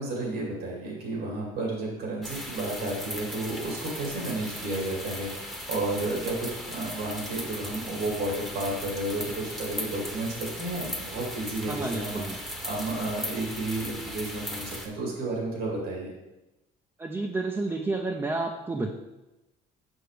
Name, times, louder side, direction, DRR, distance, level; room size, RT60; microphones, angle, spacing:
voice 1, 0.0-12.2 12.6-16.1, right 2 dB, 85° right, -2 dB, 2.5 m, -32 dB
sound 1, 2.2-14.9, equal, ahead, 0.9 m, -37 dB
voice 2, 11.7-12.4 17.0-18.9, right 3 dB, 15° right, 2 dB, 0.5 m, -30 dB
6.3 x 5.6 x 3.3 m, 0.99 s
cardioid pair, 110°, 17 cm